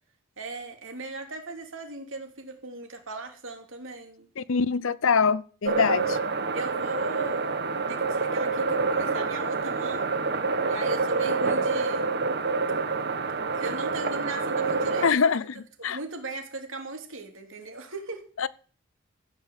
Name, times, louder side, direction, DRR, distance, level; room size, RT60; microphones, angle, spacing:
voice 1, 0.4-4.3 6.5-10.1 10.7-12.1 13.5-15.1 15.8-18.2, right 2 dB, 70° right, 2.8 m, -38 dB
voice 2, 4.4-6.2 15.0-15.5 15.8-16.0 18.4-18.5, left 5 dB, 70° left, 0.6 m, -24 dB
sound 1, 5.6-15.1, right 4 dB, 50° right, 1.1 m, -27 dB
15.0 x 6.0 x 7.9 m
head